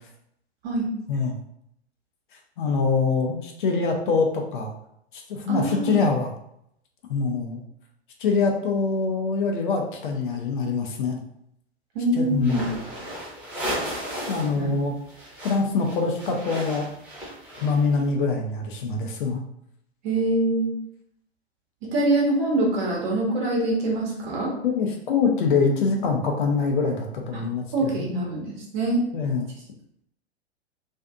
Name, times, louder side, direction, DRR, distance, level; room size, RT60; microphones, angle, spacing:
voice 1, 2.6-4.7 5.1-6.3 7.1-7.6 8.2-11.2 12.1-12.7 14.3-14.9 15.4-16.9 17.6-19.4 24.6-28.1 29.1-29.5, left 4 dB, 50° left, 2 dB, 0.5 m, -24 dB
voice 2, 5.5-6.0 11.9-12.7 14.5-14.8 20.0-20.8 21.8-24.5 27.3-27.4 27.7-29.0, right 2 dB, 45° right, -2 dB, 0.9 m, -24 dB
sound 1, 12.4-14.6 14.8-18.0, equal, 5° right, 0.9 m, -34 dB
2.5 x 2.4 x 2.3 m, 0.73 s
figure-of-eight pair, 100°, 33 cm